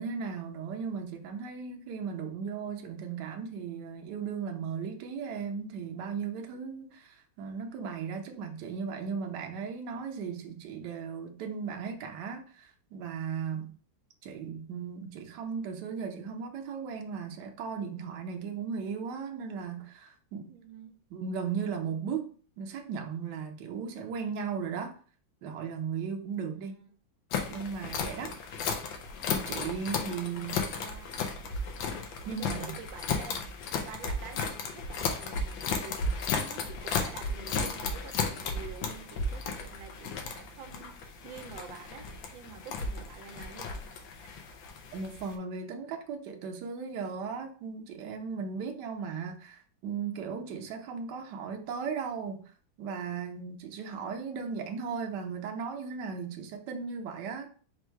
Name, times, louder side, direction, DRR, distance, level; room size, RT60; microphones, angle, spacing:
voice 1, 0.0-13.7 14.2-20.5 21.1-25.0 25.4-26.7 27.5-28.4 29.3-30.6 32.3-32.8 44.9-52.4 52.8-57.5, right 6 dB, 70° right, 1.2 m, -36 dB
voice 2, 20.5-21.0 26.5-26.9 30.2-31.1 32.2-33.4 33.8-42.1 42.3-43.8, right 7 dB, 85° right, 1.4 m, -48 dB
sound 1, 27.3-45.3, left 4 dB, 85° left, 1.4 m, -34 dB
4.4 x 2.4 x 4.5 m
omnidirectional pair, 2.1 m